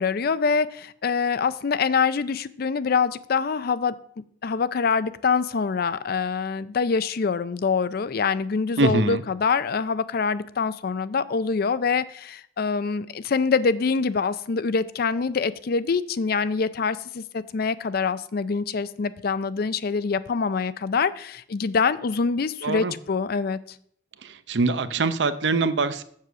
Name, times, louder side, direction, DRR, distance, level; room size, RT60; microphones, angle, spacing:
voice 1, 0.0-4.0 4.4-23.6, left 5 dB, 55° left, 15 dB, 0.4 m, -25 dB
voice 2, 8.8-9.2 22.6-22.9 24.2-26.0, right 3 dB, 70° right, 12 dB, 0.7 m, -23 dB
7.5 x 6.2 x 6.8 m, 0.64 s
head